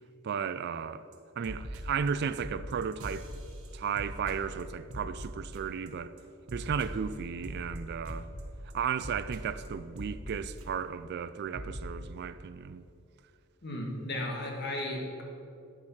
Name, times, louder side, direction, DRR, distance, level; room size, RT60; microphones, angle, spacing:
voice 1, 0.2-1.0 1.4-3.3 3.7-6.1 6.5-8.3 8.7-12.8, right 7 dB, 50° right, 0.3 m, -34 dB
sound 1, 1.1-1.2 1.4-2.1 2.4-5.9 6.2-11.0 11.2-11.3 11.5-11.8, equal, 70° right, 1.4 m, -42 dB
voice 2, 13.6-15.2, left 1 dB, 50° left, 1.8 m, -35 dB
10.5 x 8.1 x 5.8 m
head